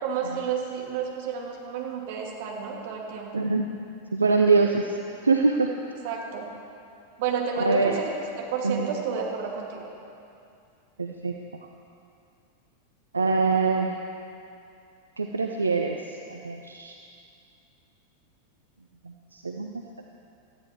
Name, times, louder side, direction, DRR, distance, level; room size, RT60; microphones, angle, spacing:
voice 1, 0.0-3.4 6.0-6.5 7.2-8.0 8.4-9.9, right 6 dB, 50° right, -1 dB, 2.7 m, -31 dB
voice 2, 3.3-3.7 4.1-4.9 5.2-5.7 7.6-8.0 8.6-8.9 11.0-11.3 13.1-13.9 15.2-16.9 19.0-20.0, right 4 dB, 75° right, 3 dB, 0.7 m, -24 dB
19.0 x 14.0 x 4.7 m, 2.6 s
figure-of-eight pair, 90°, 0 cm